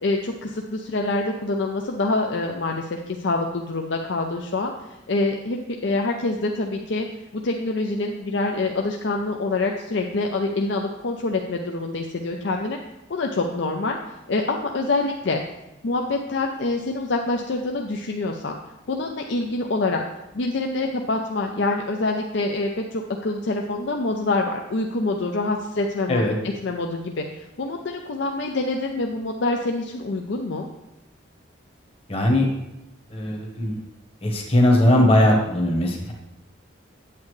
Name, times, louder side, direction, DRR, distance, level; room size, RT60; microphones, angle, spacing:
voice 1, 0.0-4.7 5.1-7.1 7.3-12.8 13.1-15.4 15.8-18.6 18.9-20.0 20.3-30.7, left 2 dB, 60° left, 2 dB, 0.6 m, -26 dB
voice 2, 32.1-32.5 33.1-33.8 34.2-36.1, left 1 dB, 30° left, 0 dB, 1.2 m, -19 dB
8.6 x 8.3 x 3.2 m, 0.94 s
head